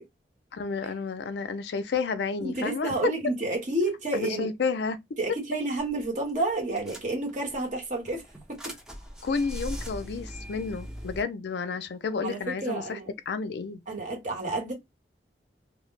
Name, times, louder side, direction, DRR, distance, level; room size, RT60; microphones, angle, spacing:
voice 1, 0.5-3.1 4.1-5.0 9.2-13.0 13.3-13.8, left 5 dB, 60° left, 0.4 m, -31 dB
voice 2, 2.4-4.5 5.2-8.6 12.2-13.1 13.9-14.7, right 2 dB, 45° right, 0.9 m, -30 dB
sound 1, 5.8-6.0 6.3-6.4 6.8-7.5 8.0-11.2, equal, 5° right, 0.4 m, -39 dB
2.1 x 2.0 x 3.1 m
head